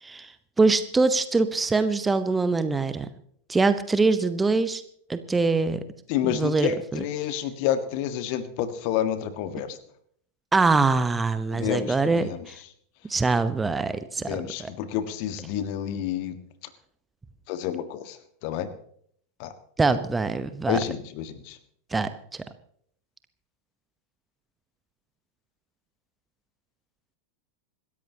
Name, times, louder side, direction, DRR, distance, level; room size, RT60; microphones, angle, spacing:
voice 1, 0.0-3.1 3.5-4.8 5.1-5.8 6.3-7.0 10.5-12.6 13.1-14.7 19.8-20.8 21.9-22.4, right 3 dB, 10° right, 12 dB, 0.9 m, -24 dB
voice 2, 6.1-9.8 11.5-12.4 14.2-16.3 17.5-18.7 19.4-19.5 20.6-21.6, left 10 dB, 45° left, 12 dB, 1.5 m, -29 dB
26.5 x 13.5 x 2.9 m, 0.64 s
figure-of-eight pair, 90°, 0 cm